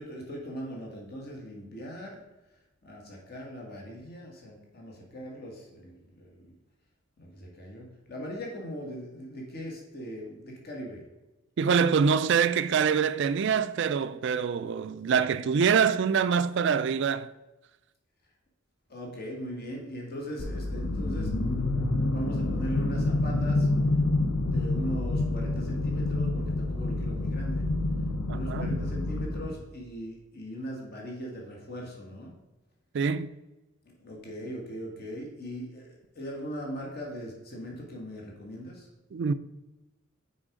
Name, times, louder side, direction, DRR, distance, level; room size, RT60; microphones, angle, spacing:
voice 1, 0.0-2.2 2.8-6.5 7.2-11.0 18.9-21.6 22.1-23.7 24.2-27.7 28.3-32.3 33.8-38.9, equal, 45° left, 1.6 m, -40 dB
voice 2, 11.6-17.3 28.3-28.7 32.9-33.3 39.1-39.3, right 6 dB, 55° right, 0.3 m, -25 dB
sound 1, 20.4-29.5, left 2 dB, 80° left, 0.8 m, -28 dB
6.2 x 4.8 x 5.0 m
head